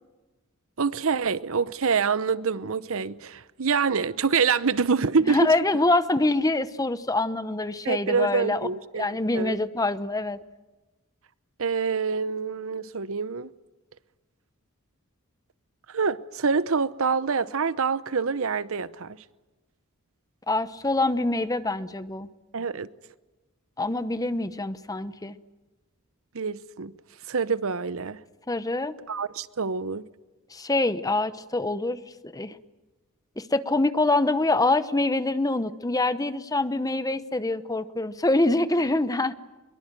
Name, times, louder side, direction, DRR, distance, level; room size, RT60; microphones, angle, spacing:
voice 1, 0.8-5.5 7.8-9.6 11.6-13.5 15.9-19.2 22.5-22.9 26.3-26.9 27.3-28.2 29.1-30.1, right 5 dB, 65° right, 0.8 m, -26 dB
voice 2, 5.3-8.7 8.9-10.4 20.5-22.3 23.8-25.4 28.5-28.9 30.5-32.0 32.2-32.6 33.4-39.3, left 2 dB, 15° left, 0.9 m, -25 dB
23.5 x 22.5 x 9.1 m
head